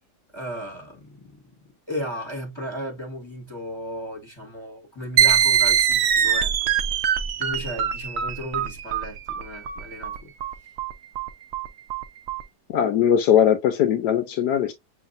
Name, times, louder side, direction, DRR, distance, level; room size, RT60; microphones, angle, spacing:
voice 1, 0.3-1.4 1.9-6.7 7.4-10.3, equal, 20° left, 1.3 m, -35 dB
sound 1, 5.2-12.4, right 9 dB, 70° right, 0.6 m, -23 dB
voice 2, 12.7-14.7, left 9 dB, 85° left, 1.2 m, -20 dB
7.2 x 2.8 x 2.5 m
omnidirectional pair, 1.7 m